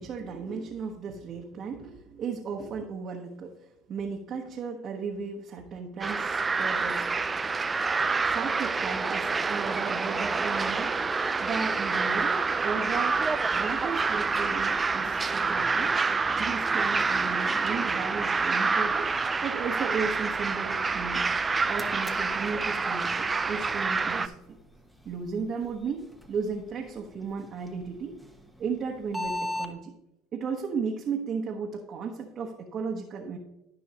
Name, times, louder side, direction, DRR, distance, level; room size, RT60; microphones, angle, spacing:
voice 1, 0.0-3.6 3.9-7.1 8.2-11.0 11.4-16.0 16.4-21.3 21.7-24.3 25.0-28.2 28.6-29.9 30.3-33.4, right 5 dB, 45° right, 0 dB, 1.1 m, -35 dB
sound 1, 6.0-24.3, right 4 dB, 25° right, 0.5 m, -27 dB
sound 2, 21.3-29.7, left 2 dB, ahead, 1.1 m, -42 dB
13.5 x 5.5 x 2.9 m, 0.91 s
hypercardioid pair, 85°, 0 cm